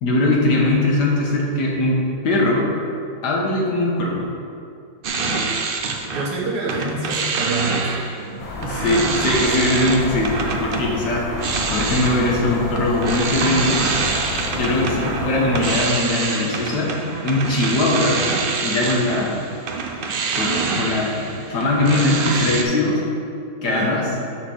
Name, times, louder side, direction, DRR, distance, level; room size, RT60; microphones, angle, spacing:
voice 1, 0.0-2.7 3.2-4.3 8.6-13.8 14.6-18.2 18.6-19.4 20.3-21.1 21.5-23.0 23.6-24.1, left 2 dB, 85° left, -2 dB, 1.8 m, -21 dB
sound 1, 5.0-6.3 6.6-22.6, right 4 dB, 70° right, 0.5 m, -26 dB
voice 2, 5.1-5.8 6.1-8.0 23.6-24.3, right 2 dB, 85° right, -3 dB, 1.8 m, -27 dB
sound 2, 8.4-15.8, left 2 dB, 65° left, 1.4 m, -30 dB
6.5 x 4.2 x 6.3 m, 2.5 s
omnidirectional pair, 1.7 m